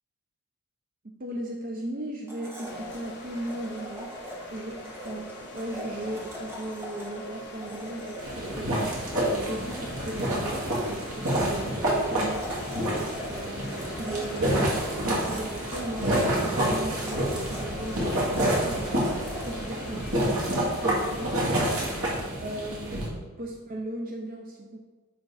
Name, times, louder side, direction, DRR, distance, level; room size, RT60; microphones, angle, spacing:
voice 1, 1.2-8.9 9.3-10.6 10.8-12.4 12.9-14.6 14.9-19.1 19.4-21.5 22.0-23.0 23.4-24.8, right 1 dB, 40° right, 0 dB, 0.6 m, -37 dB
Domestic sounds home sounds, 2.3-21.1, equal, 10° right, 1.2 m, -40 dB
sound 1, 2.6-22.2, left 3 dB, 50° left, 0.9 m, -45 dB
sound 2, 8.2-23.1, right 1 dB, 70° right, 2.1 m, -28 dB
9.8 x 3.9 x 4.0 m, 1.4 s
head